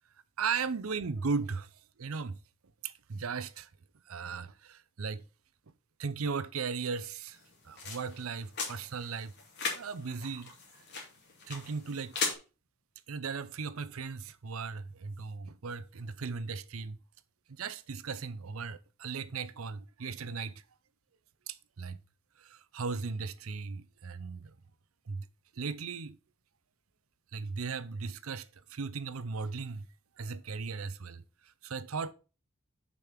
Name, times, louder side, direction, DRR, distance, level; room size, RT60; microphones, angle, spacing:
voice 1, 0.4-1.7 2.0-2.4 2.8-3.7 4.1-5.2 6.0-7.4 7.6-9.3 9.7-10.5 11.5-12.1 13.1-17.0 17.5-20.6 21.5-22.0 22.4-24.5 25.1-25.3 25.6-26.2 27.3-29.9 30.2-31.2 31.6-32.1, right 5 dB, 85° right, 0.6 m, -37 dB
sound 1, 7.3-12.3, left 4 dB, 55° left, 2.6 m, -39 dB
6.7 x 5.3 x 5.9 m
head